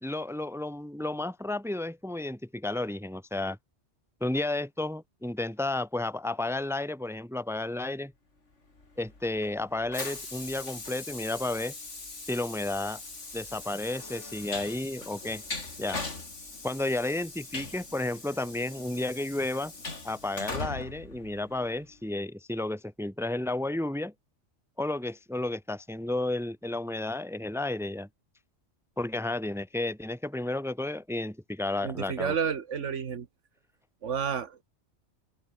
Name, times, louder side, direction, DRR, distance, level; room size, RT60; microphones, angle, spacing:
voice 1, 0.0-3.6 4.2-8.1 9.0-11.7 12.3-13.0 13.3-15.4 15.8-16.0 16.6-19.7 20.0-24.1 24.8-28.1 29.0-32.3, left 2 dB, ahead, 1.3 m, -32 dB
Train, 8.8-22.0, left 3 dB, 80° left, 3.9 m, -41 dB
voice 2, 31.8-33.3 34.0-34.6, right 7 dB, 90° right, 1.6 m, -31 dB
open air
omnidirectional pair, 1.2 m